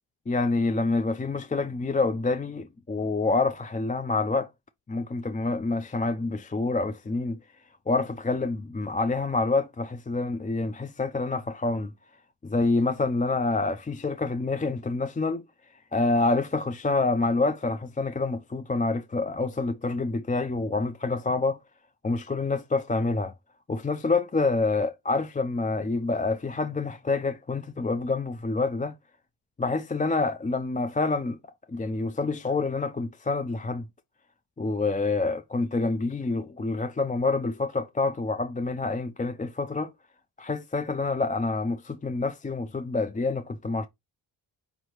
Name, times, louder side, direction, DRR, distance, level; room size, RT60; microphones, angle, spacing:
voice 1, 0.3-4.5 4.9-7.4 7.9-11.9 12.4-15.4 15.9-21.6 22.0-23.3 23.7-28.9 29.6-31.4 31.7-33.9 34.6-39.9 40.4-43.9, left 3 dB, 15° left, 0.4 m, -27 dB
5.3 x 3.1 x 2.9 m
cardioid pair, 50°, 49 cm